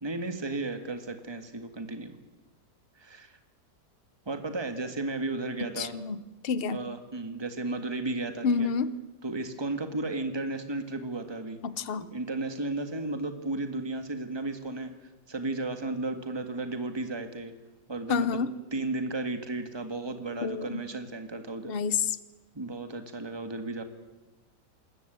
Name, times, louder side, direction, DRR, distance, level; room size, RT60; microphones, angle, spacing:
voice 1, 0.0-2.1 3.0-3.4 4.2-6.0 6.7-8.7 9.2-11.6 12.0-14.9 15.3-17.5 17.9-18.3 18.7-21.7 22.5-23.8, right 2 dB, 15° right, 8 dB, 1.7 m, -34 dB
voice 2, 5.8-6.8 8.4-8.9 11.6-12.1 18.1-18.5 20.4-20.8 21.6-22.2, left 5 dB, 45° left, 16 dB, 0.9 m, -29 dB
27.0 x 14.0 x 9.3 m, 1.1 s
omnidirectional pair, 1.8 m